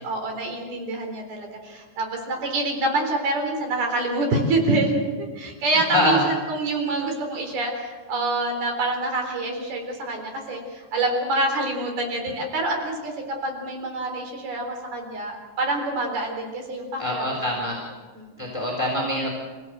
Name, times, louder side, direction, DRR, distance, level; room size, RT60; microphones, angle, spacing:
voice 1, 0.0-13.1 13.4-17.8 18.1-18.3, right 2 dB, 55° right, 2 dB, 5.6 m, -26 dB
voice 2, 5.9-6.2 17.0-17.8 18.4-19.4, left 1 dB, 5° left, -3 dB, 3.0 m, -24 dB
28.0 x 16.0 x 8.0 m, 1.4 s
omnidirectional pair, 5.5 m